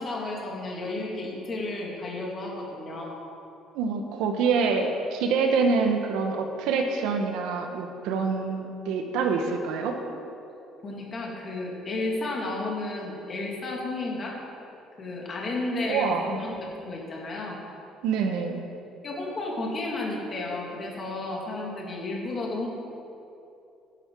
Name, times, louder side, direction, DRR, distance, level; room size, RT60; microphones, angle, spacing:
voice 1, 0.0-3.2 10.8-14.4 15.0-17.6 19.0-22.7, left 2 dB, 30° left, -2 dB, 2.7 m, -32 dB
voice 2, 3.7-9.9 15.8-16.3 18.0-18.6, right 5 dB, 80° right, 4 dB, 1.5 m, -26 dB
16.5 x 11.0 x 4.9 m, 2.8 s
cardioid pair, 165°, 0 cm